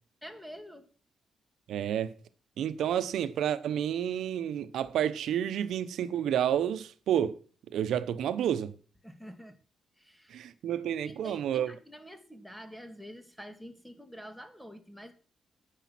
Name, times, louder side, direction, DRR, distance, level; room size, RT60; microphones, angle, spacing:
voice 1, 0.2-0.9 9.0-9.6 10.0-10.5 11.0-15.1, equal, ahead, 2.0 m, -47 dB
voice 2, 1.7-2.1 2.6-7.4 7.7-8.7 10.3-11.7, right 10 dB, 80° right, 0.8 m, -30 dB
10.0 x 9.3 x 6.1 m
cardioid pair, 110°, 0 cm